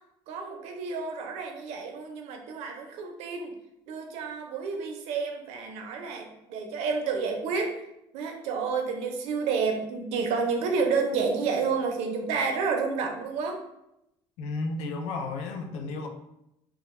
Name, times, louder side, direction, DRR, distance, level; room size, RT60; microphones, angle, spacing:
voice 1, 0.3-3.5 3.9-7.8 8.1-13.6, right 5 dB, 80° right, 3 dB, 0.5 m, -30 dB
voice 2, 14.4-16.1, left 3 dB, 85° left, 5 dB, 0.4 m, -33 dB
2.3 x 2.2 x 3.0 m, 0.83 s
cardioid pair, 130°, 11 cm